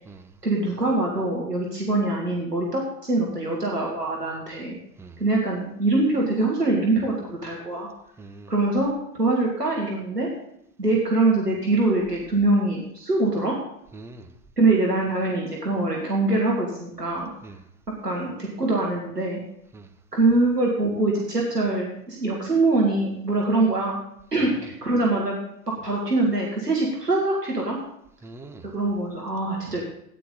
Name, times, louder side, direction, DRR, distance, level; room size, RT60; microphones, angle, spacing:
voice 1, 0.4-4.7 5.2-7.9 8.5-8.9 9.2-10.3 10.8-13.6 14.6-17.3 18.0-19.4 20.1-24.0 24.3-25.3 25.7-27.8 28.6-29.8, right 2 dB, 90° right, -2 dB, 2.0 m, -23 dB
voice 2, 8.2-8.5 13.9-14.3 17.4-17.6 19.7-19.9 24.4-24.6 28.2-28.7, right 3 dB, 5° right, 6 dB, 0.5 m, -43 dB
13.5 x 9.4 x 3.9 m, 0.74 s
figure-of-eight pair, 85°, 46 cm